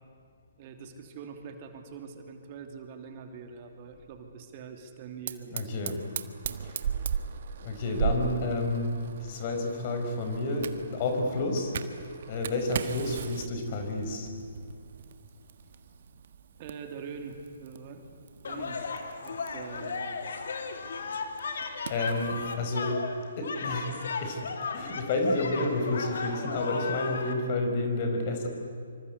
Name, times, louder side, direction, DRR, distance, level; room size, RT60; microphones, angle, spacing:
voice 1, 0.6-5.9 6.5-6.6 16.6-18.8 19.2-20.2, right 5 dB, 35° right, 5 dB, 2.9 m, -44 dB
Fire, 5.3-22.6, right 7 dB, 55° right, 1.5 m, -39 dB
voice 2, 5.5-6.0 6.6-6.8 7.6-14.3 21.9-23.0 23.4-23.9 24.2-28.5, left 2 dB, 40° left, 4 dB, 5.2 m, -30 dB
sound 1, 18.4-27.3, left 5 dB, 65° left, 3.2 m, -35 dB
25.5 x 25.5 x 8.2 m, 2.3 s
figure-of-eight pair, 135°, 0 cm